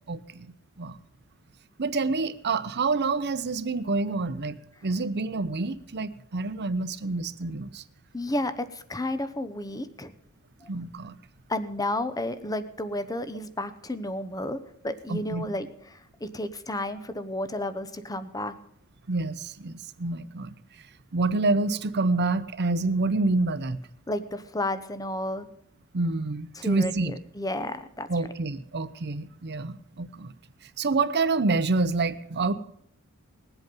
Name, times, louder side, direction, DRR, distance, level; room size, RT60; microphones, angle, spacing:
voice 1, 0.1-0.5 0.8-1.0 1.8-7.8 10.7-11.1 15.1-15.5 19.1-20.5 21.1-23.8 25.9-27.1 28.1-30.3 30.6-32.5, right 3 dB, 50° right, 12 dB, 0.8 m, -27 dB
voice 2, 8.1-10.1 10.6-10.7 11.5-14.6 14.8-18.6 24.1-25.5 26.6-28.1, left 1 dB, 15° left, 12 dB, 0.8 m, -32 dB
20.0 x 8.1 x 5.3 m, 0.76 s
head